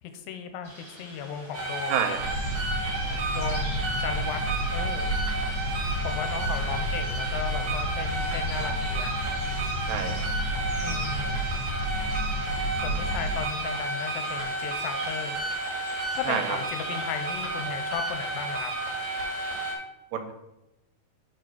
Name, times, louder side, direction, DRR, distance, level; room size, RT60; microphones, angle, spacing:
voice 1, 0.0-2.0 3.3-5.1 6.0-9.1 10.8-11.4 12.7-15.5 16.1-18.7, left 8 dB, 85° left, 7 dB, 2.3 m, -36 dB
sound 1, 0.6-17.4, equal, 15° left, 2.3 m, -46 dB
sound 2, 1.5-19.8, right 2 dB, 45° right, 1.7 m, -32 dB
voice 2, 1.9-2.2 3.0-3.2 9.9-10.2 16.3-16.6 20.1-20.3, right 7 dB, 80° right, 6 dB, 2.1 m, -29 dB
sound 3, 2.2-13.4, equal, 50° left, 2.8 m, -31 dB
4.9 x 4.8 x 5.9 m, 0.93 s
omnidirectional pair, 4.1 m